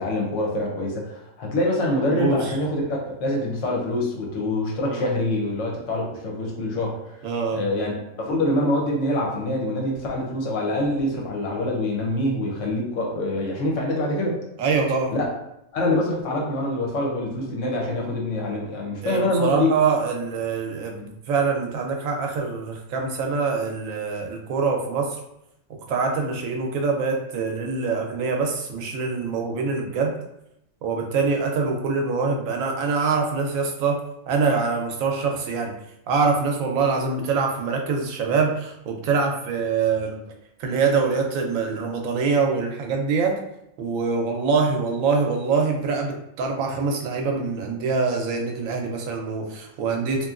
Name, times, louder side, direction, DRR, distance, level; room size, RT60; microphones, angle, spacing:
voice 1, 0.0-7.2 7.5-14.4 15.1-15.3 15.7-19.7, left 1 dB, 75° left, -1 dB, 1.1 m, -25 dB
voice 2, 2.1-2.5 4.8-5.1 7.2-7.6 14.6-15.1 19.0-25.2 25.9-30.2 30.8-34.0 34.3-35.7 36.1-40.2 40.6-43.4 43.8-50.3, right 4 dB, 85° right, 2 dB, 1.0 m, -24 dB
2.9 x 2.4 x 2.4 m, 0.82 s
omnidirectional pair, 1.4 m